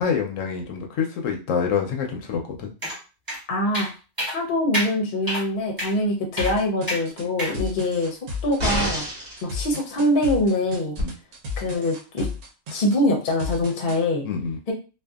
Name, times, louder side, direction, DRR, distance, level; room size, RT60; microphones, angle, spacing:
voice 1, 0.0-2.7 11.0-11.1 14.2-14.6, left 6 dB, 80° left, 2 dB, 0.9 m, -26 dB
sound 1, 2.8-3.0 3.3-3.4 3.7-3.9 4.2-4.4 4.7-4.9 5.3-5.4 5.8-5.9 6.4-6.5 6.9-7.0 7.4-7.6, equal, 20° right, 0.8 m, -27 dB
voice 2, 3.5-3.9 4.3-8.2 8.4-9.0 9.4-11.0 11.6-12.3 12.7-14.3 14.7-14.8, left 1 dB, 50° left, 0 dB, 0.8 m, -23 dB
sound 2, 6.4-14.0, left 4 dB, 90° right, 1.1 m, -34 dB
sound 3, 8.6-9.4 11.0-11.1, equal, 50° right, 1.1 m, -26 dB
2.6 x 2.4 x 2.3 m, 0.32 s
omnidirectional pair, 1.3 m